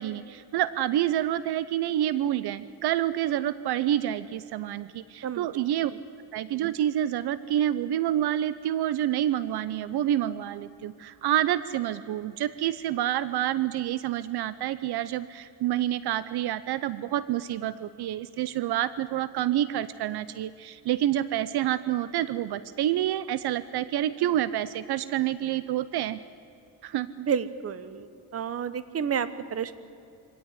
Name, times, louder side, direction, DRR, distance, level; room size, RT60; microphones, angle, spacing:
voice 1, 0.0-5.9 6.3-26.2 26.8-27.1, right 12 dB, 65° right, 16 dB, 0.8 m, -28 dB
voice 2, 27.2-28.1 28.3-29.7, right 7 dB, 35° right, 14 dB, 1.1 m, -30 dB
25.0 x 17.0 x 9.8 m, 2.7 s
cardioid pair, 140°, 41 cm